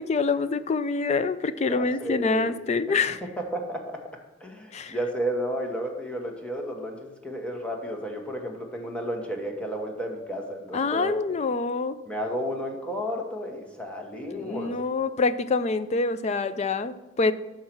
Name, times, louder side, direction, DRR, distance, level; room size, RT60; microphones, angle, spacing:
voice 1, 0.0-3.2 4.7-4.9 10.7-12.0 14.3-17.3, left 4 dB, 35° left, 13 dB, 0.4 m, -26 dB
voice 2, 1.7-2.6 3.1-4.0 4.4-11.5 12.1-14.7, equal, 5° left, 1 dB, 1.1 m, -32 dB
6.5 x 5.5 x 5.9 m, 1.2 s
head